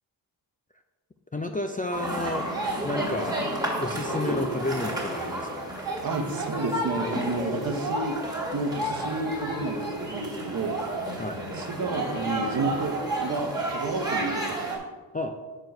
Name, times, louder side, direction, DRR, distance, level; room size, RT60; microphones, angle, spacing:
voice 1, 1.3-2.5 2.8-3.4 3.8-5.7 11.2-11.4 15.1-15.3, left 2 dB, 20° left, 5 dB, 0.4 m, -31 dB
sound 1, 1.9-14.8, right 1 dB, 10° right, 2.0 m, -31 dB
voice 2, 6.0-8.2 8.5-10.8 11.5-14.6, right 3 dB, 50° right, 5 dB, 0.9 m, -31 dB
6.1 x 4.6 x 5.3 m, 1.3 s
wide cardioid pair, 90°, 45 cm